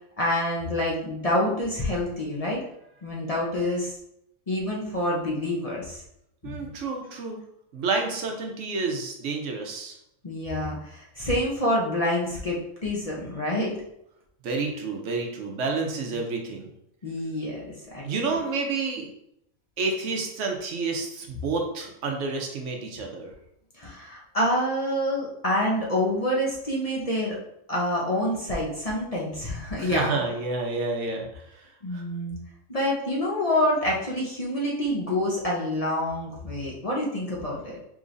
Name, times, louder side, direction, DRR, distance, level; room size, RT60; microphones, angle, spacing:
voice 1, 0.2-2.6 3.0-3.9 4.5-6.0 6.4-6.7 10.2-13.7 15.8-16.1 17.0-18.0 18.3-18.4 23.8-27.4 27.7-30.2 31.8-32.4 32.7-37.8, left 1 dB, 35° left, -4 dB, 0.7 m, -27 dB
voice 2, 6.4-7.4 7.7-10.0 14.4-16.7 18.0-19.1 19.8-23.3 29.8-31.4 31.9-32.0, right 3 dB, 65° right, 2 dB, 1.0 m, -29 dB
4.9 x 3.0 x 2.6 m, 0.77 s
omnidirectional pair, 1.4 m